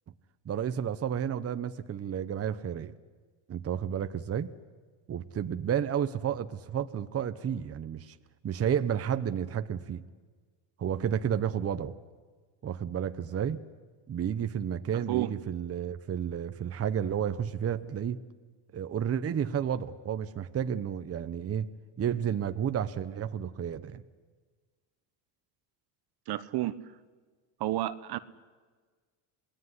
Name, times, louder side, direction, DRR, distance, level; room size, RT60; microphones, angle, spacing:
voice 1, 0.4-2.9 3.5-4.5 5.1-8.1 8.4-10.0 10.8-11.9 12.6-13.6 14.1-18.2 18.7-21.7 22.0-24.0, right 8 dB, 30° right, 9 dB, 1.1 m, -31 dB
voice 2, 26.3-26.7 27.6-28.2, right 15 dB, 55° right, 13 dB, 1.2 m, -30 dB
27.0 x 19.0 x 9.8 m, 1.5 s
supercardioid pair, 105°, 45 cm